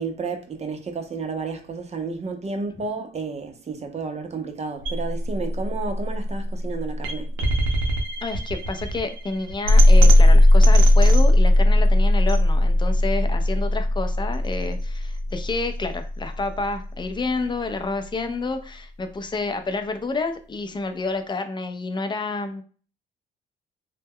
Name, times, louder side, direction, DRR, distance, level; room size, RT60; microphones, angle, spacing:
voice 1, 0.0-7.3, right 4 dB, 35° right, 0.6 m, -31 dB
sound 1, 4.8-16.8, left 1 dB, 85° right, 0.6 m, -18 dB
voice 2, 8.2-22.6, left 3 dB, 25° left, 0.4 m, -29 dB
2.2 x 2.1 x 3.5 m
cardioid pair, 90°, 20 cm